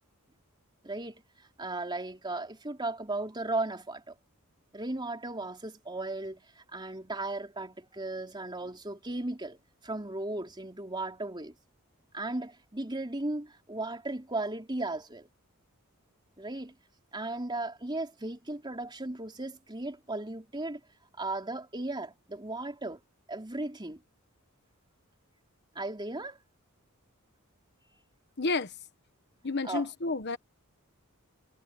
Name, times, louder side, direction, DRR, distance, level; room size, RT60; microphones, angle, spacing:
voice 1, 0.8-4.2 4.7-9.6 9.8-11.5 12.1-15.3 16.4-16.8 17.1-20.8 21.2-23.0 23.3-24.0 25.8-26.4 29.6-29.9, right 2 dB, 20° right, 3.5 m, -36 dB
voice 2, 28.4-28.7 29.4-30.4, left 3 dB, 50° left, 1.2 m, -30 dB
head